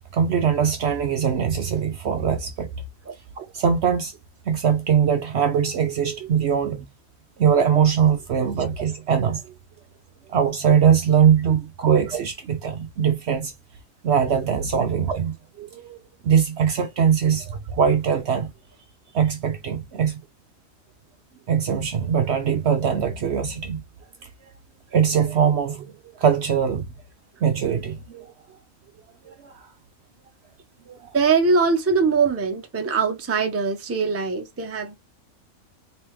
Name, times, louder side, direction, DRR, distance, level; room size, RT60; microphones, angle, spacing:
voice 1, 0.1-2.7 3.4-4.1 4.5-6.9 7.4-9.4 10.3-13.5 14.0-18.5 19.1-20.2 21.5-23.8 24.9-26.8 27.4-28.3 29.2-29.7 30.9-31.0, right 7 dB, 60° right, 0.8 m, -21 dB
voice 2, 31.1-35.0, right 4 dB, 15° right, 0.5 m, -22 dB
3.3 x 3.0 x 3.0 m
omnidirectional pair, 1.4 m